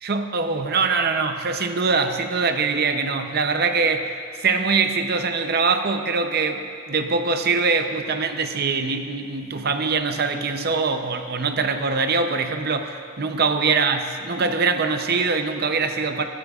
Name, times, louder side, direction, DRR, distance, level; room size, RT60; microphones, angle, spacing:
voice 1, 0.0-16.2, right 4 dB, 50° right, 6 dB, 0.7 m, -23 dB
15.0 x 13.5 x 2.4 m, 2.6 s
head